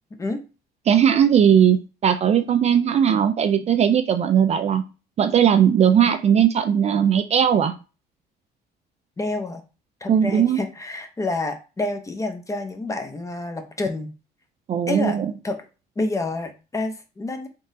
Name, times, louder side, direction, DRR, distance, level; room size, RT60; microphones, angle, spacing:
voice 1, 0.9-1.8 2.0-4.8 5.2-7.7 10.1-10.6 14.7-15.3, right 8 dB, 40° right, 8 dB, 0.4 m, -18 dB
voice 2, 9.2-9.6 10.0-14.1 14.9-15.6 16.0-17.5, left 2 dB, 20° left, 6 dB, 0.7 m, -28 dB
3.7 x 3.6 x 2.6 m, 0.31 s
cardioid pair, 110°, 17 cm